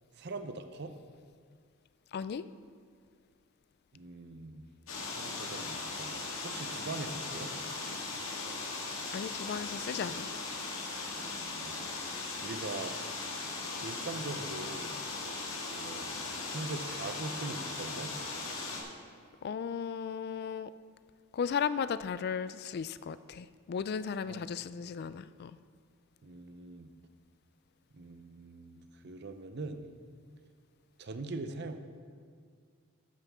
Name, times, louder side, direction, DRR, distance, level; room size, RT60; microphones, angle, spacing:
voice 1, 0.1-0.9 3.9-4.6 5.1-7.5 11.2-11.7 12.4-13.0 13.8-15.0 15.7-16.1 16.5-18.1 24.3-24.5 26.2-26.9 27.9-29.8 31.0-31.8, right 3 dB, 50° right, 9 dB, 0.6 m, -42 dB
voice 2, 2.1-2.4 9.1-10.3 19.4-20.7 21.3-25.6, left 6 dB, 50° left, 15 dB, 0.3 m, -35 dB
sound 1, 4.9-18.8, left 3 dB, 70° left, 1.7 m, -38 dB
13.0 x 9.1 x 3.6 m, 2.1 s
head